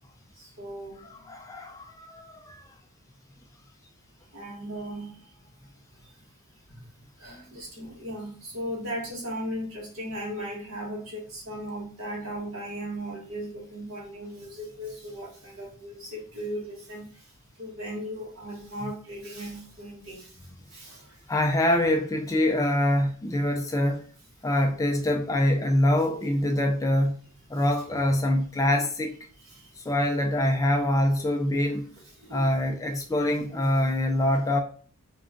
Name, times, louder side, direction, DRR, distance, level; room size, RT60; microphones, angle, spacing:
voice 1, 0.4-1.1 4.3-5.2 6.7-6.8 7.2-17.2 17.6-20.3 20.7-21.2 28.6-28.8 29.4-29.7 32.0-32.5, equal, 70° right, 1.5 m, -37 dB
voice 2, 1.0-2.6 7.5-7.6 21.3-24.0 24.4-27.2 27.5-29.1 29.8-31.9 32.3-34.6, left 1 dB, 15° left, 0.4 m, -25 dB
3.5 x 2.3 x 3.7 m
head